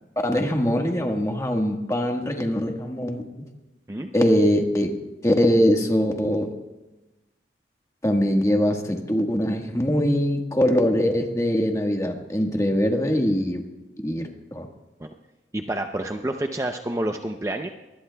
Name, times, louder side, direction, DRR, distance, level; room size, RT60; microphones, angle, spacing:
voice 1, 0.2-3.2 4.1-5.0 5.2-6.5 8.0-13.6 14.0-14.7, equal, 15° left, 2 dB, 1.4 m, -22 dB
voice 2, 15.5-17.7, right 1 dB, 15° right, 4 dB, 0.6 m, -28 dB
23.5 x 20.5 x 2.3 m, 1.1 s
head